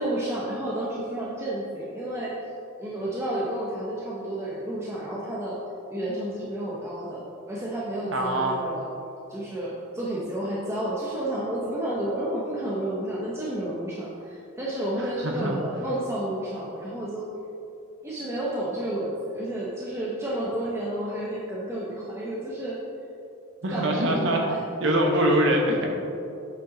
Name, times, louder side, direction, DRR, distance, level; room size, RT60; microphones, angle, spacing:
voice 1, 0.0-2.4 2.8-5.6 5.9-7.2 7.5-8.9 9.3-17.3 18.0-22.8 23.7-24.6, right 1 dB, 10° right, -6 dB, 0.7 m, -31 dB
voice 2, 8.1-8.6 15.0-15.6 23.6-24.4 24.8-25.9, right 1 dB, 65° right, 1 dB, 1.0 m, -23 dB
8.2 x 5.2 x 3.8 m, 2.7 s
head